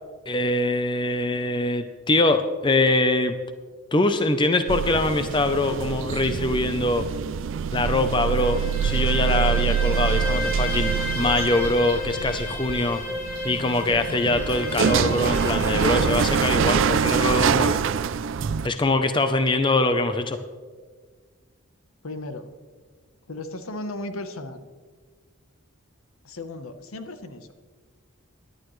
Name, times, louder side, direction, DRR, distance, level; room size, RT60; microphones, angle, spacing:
voice 1, 0.3-3.3 3.9-7.1 7.7-13.0 13.4-17.8 18.6-20.4, left 2 dB, 20° left, 9 dB, 0.6 m, -23 dB
sound 1, 4.7-18.7, right 7 dB, 60° right, 0.4 m, -25 dB
Bowed string instrument, 8.2-16.5, left 1 dB, 45° left, 2.8 m, -32 dB
voice 2, 22.0-22.5 23.3-24.6 26.2-27.5, left 2 dB, 80° left, 9 dB, 1.0 m, -35 dB
18.0 x 11.5 x 3.2 m, 1.5 s
head